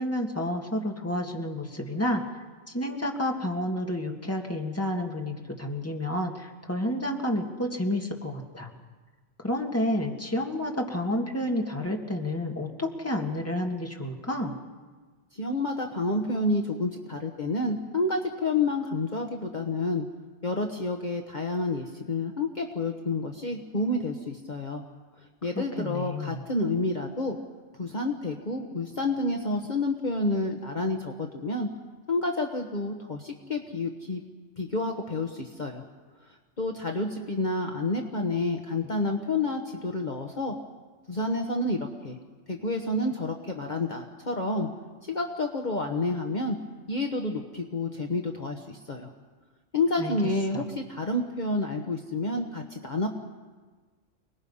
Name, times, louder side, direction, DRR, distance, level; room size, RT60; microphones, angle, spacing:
voice 1, 0.0-2.2 2.7-8.7 9.4-14.5 25.6-26.4 50.0-50.1 50.5-50.6, left 1 dB, 10° left, 1 dB, 2.0 m, -30 dB
voice 2, 15.3-20.1 20.4-24.8 25.4-27.4 27.8-31.7 32.1-34.2 34.6-35.8 36.3-40.5 41.1-42.2 42.5-44.7 45.0-46.6 46.9-49.1 49.7-53.1, left 2 dB, 40° left, 2 dB, 1.4 m, -29 dB
29.5 x 20.0 x 5.6 m, 1.4 s
omnidirectional pair, 1.2 m